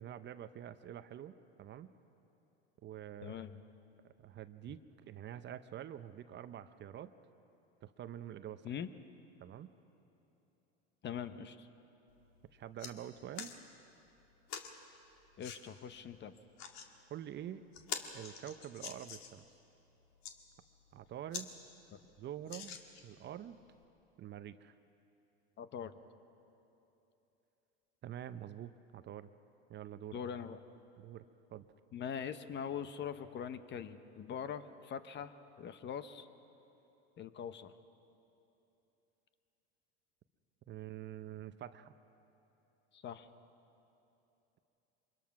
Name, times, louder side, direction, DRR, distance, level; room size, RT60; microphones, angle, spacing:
voice 1, 0.0-1.3 1.6-1.9 2.8-3.4 4.0-7.1 7.8-8.7 9.4-9.7 12.5-13.5 17.1-17.7 18.1-19.4 20.9-21.5 22.2-22.8 23.0-23.6 24.2-24.7 28.0-29.3 29.7-30.2 31.0-31.3 31.5-31.7 40.7-41.9, right 11 dB, 35° right, 12 dB, 0.7 m, -46 dB
voice 2, 3.2-3.6 8.6-8.9 11.0-11.7 15.4-16.3 21.9-22.0 25.6-25.9 30.1-30.6 31.9-35.3 35.6-36.3 37.2-37.7 42.9-43.3, left 8 dB, 35° left, 12 dB, 0.9 m, -42 dB
sound 1, 12.1-12.2 12.5-12.9 13.3-13.6 14.5-14.7 15.4-15.6 16.4-16.9 17.3-17.4 17.7-19.4 20.0-20.3 20.9-21.0 21.3-21.5 21.8-21.9 22.5-23.2 23.8-23.9, left 7 dB, 55° left, 1.9 m, -45 dB
24.5 x 21.0 x 6.0 m, 3.0 s
hypercardioid pair, 100°, 32 cm